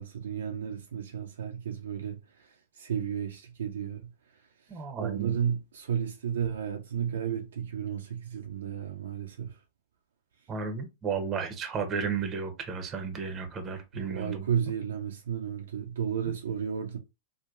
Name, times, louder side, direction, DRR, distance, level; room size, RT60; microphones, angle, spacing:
voice 1, 0.0-4.4 4.7-9.6 13.9-17.0, right 8 dB, 75° right, 0.5 m, -33 dB
voice 2, 4.7-5.4 10.5-14.5, right 6 dB, 25° right, 0.7 m, -33 dB
3.0 x 2.1 x 2.4 m
hypercardioid pair, 105°, 0 cm